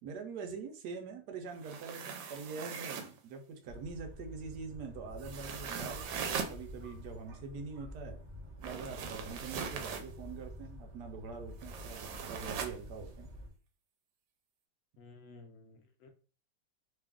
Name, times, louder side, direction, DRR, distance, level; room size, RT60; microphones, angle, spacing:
voice 1, 0.0-8.2 8.6-13.3, right 5 dB, 70° right, 5 dB, 1.1 m, -44 dB
sound 1, 1.5-3.2 5.2-6.6 8.6-10.1 11.6-12.8, right 6 dB, 90° right, 1.3 m, -40 dB
sound 2, 3.7-13.5, left 1 dB, 45° right, 0.6 m, -49 dB
voice 2, 15.0-16.1, left 3 dB, 75° left, 5 dB, 0.8 m, -54 dB
3.2 x 2.4 x 3.5 m, 0.38 s
omnidirectional pair, 2.0 m